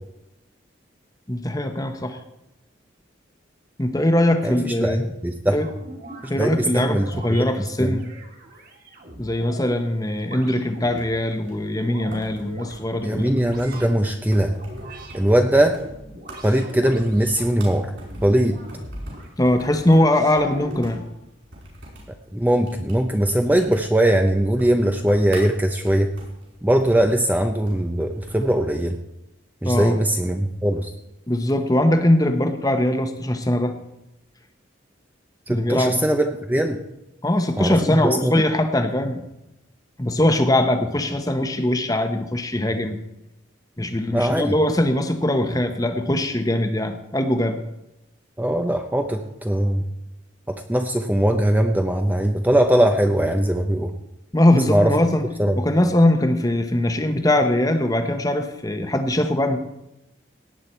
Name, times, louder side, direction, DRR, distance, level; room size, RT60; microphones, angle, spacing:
voice 1, 1.3-2.2 3.8-5.1 5.5-5.7 6.3-8.1 9.2-13.3 19.4-21.0 29.6-30.0 31.3-33.7 35.5-36.0 37.2-39.2 40.0-43.0 43.8-47.6 54.3-55.3 55.5-59.6, left 1 dB, 20° left, 7 dB, 1.0 m, -21 dB
voice 2, 4.4-5.6 6.2-7.5 7.8-8.0 13.0-14.6 15.1-15.8 16.4-17.9 18.2-18.6 22.3-26.1 26.6-29.0 29.6-30.9 35.5-36.8 37.6-38.4 44.1-44.5 48.4-49.9 50.5-53.9 54.7-54.9 55.4-55.6, right 1 dB, 10° right, 4 dB, 0.6 m, -20 dB
sound 1, 5.6-6.3 7.0-7.5 8.0-9.8 10.2-11.1 11.6-12.8 13.4-14.0 14.6-15.2 15.7-17.6 18.0-19.3 19.8-21.1, right 1 dB, 45° right, 2.1 m, -40 dB
sound 2, 10.8-28.7, right 1 dB, 70° right, 5.6 m, -45 dB
18.0 x 8.9 x 4.5 m, 0.91 s
head